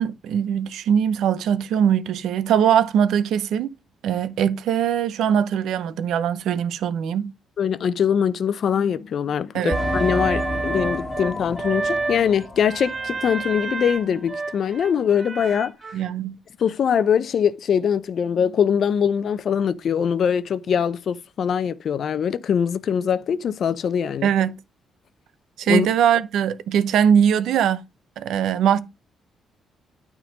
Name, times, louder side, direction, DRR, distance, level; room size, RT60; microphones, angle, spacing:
voice 1, 0.0-3.7 4.0-7.3 9.5-9.8 15.9-16.4 24.2-24.6 25.6-27.8 28.2-28.8, right 8 dB, 80° right, 0.7 m, -21 dB
voice 2, 7.6-15.7 16.6-24.3 25.7-25.9, left 7 dB, 60° left, 0.6 m, -22 dB
sound 1, 9.7-14.0 14.3-14.4 15.0-15.1, left 1 dB, 30° left, 1.5 m, -31 dB
sound 2, 9.7-16.0, right 3 dB, 35° right, 0.9 m, -29 dB
9.2 x 3.7 x 5.2 m
cardioid pair, 90°, 0 cm